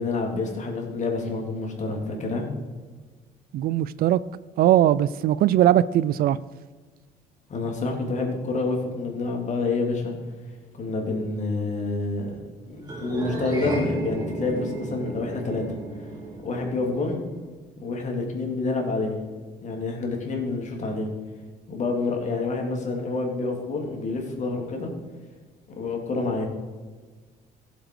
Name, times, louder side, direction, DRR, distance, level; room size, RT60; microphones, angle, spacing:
voice 1, 0.0-2.5 7.5-10.1 10.7-12.3 12.7-15.6 16.0-16.1 16.4-17.2 17.8-19.2 19.6-21.1 21.7-24.9 25.8-26.5, left 3 dB, 45° left, 3.1 m, -28 dB
voice 2, 3.5-4.2 4.6-6.4, right 12 dB, 65° right, 0.4 m, -20 dB
sound 1, 12.8-17.4, right 2 dB, 25° right, 3.8 m, -33 dB
15.0 x 7.9 x 4.9 m
cardioid pair, 110°, 17 cm